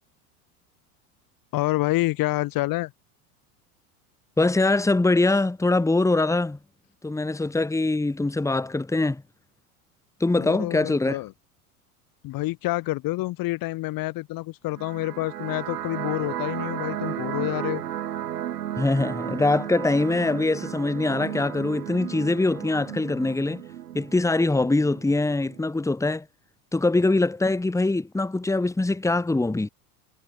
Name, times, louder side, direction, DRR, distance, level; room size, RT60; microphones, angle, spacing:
voice 1, 1.5-2.9 10.4-11.3 12.2-17.8, left 19 dB, 45° left, 2.1 m, -28 dB
voice 2, 4.4-6.6 7.0-9.2 10.2-11.2 18.8-23.6 23.9-26.3 26.7-29.7, left 2 dB, 5° left, 2.1 m, -23 dB
sound 1, 14.7-25.7, right 11 dB, 85° right, 7.3 m, -34 dB
hypercardioid pair, 100°, 46 cm